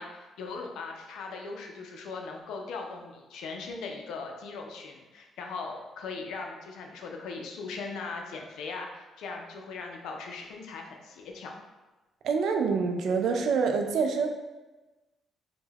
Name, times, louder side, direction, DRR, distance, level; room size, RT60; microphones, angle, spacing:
voice 1, 0.0-11.6, left 4 dB, 85° left, 2 dB, 0.4 m, -39 dB
voice 2, 12.2-14.3, right 5 dB, 70° right, 4 dB, 0.3 m, -26 dB
2.2 x 2.1 x 3.2 m, 1.1 s
cardioid pair, 90°, 0 cm